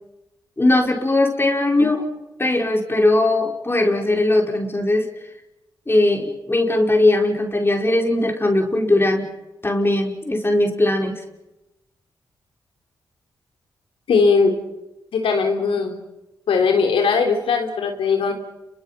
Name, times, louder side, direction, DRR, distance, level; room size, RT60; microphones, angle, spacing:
voice 1, 0.6-2.0 2.4-5.1 5.9-9.2 9.6-11.2, left 2 dB, 25° left, 2 dB, 4.9 m, -19 dB
voice 2, 14.1-14.6 15.1-16.0 16.5-18.3, left 5 dB, 80° left, 4 dB, 3.3 m, -19 dB
30.0 x 23.5 x 5.8 m, 0.93 s
supercardioid pair, 50°, 9 cm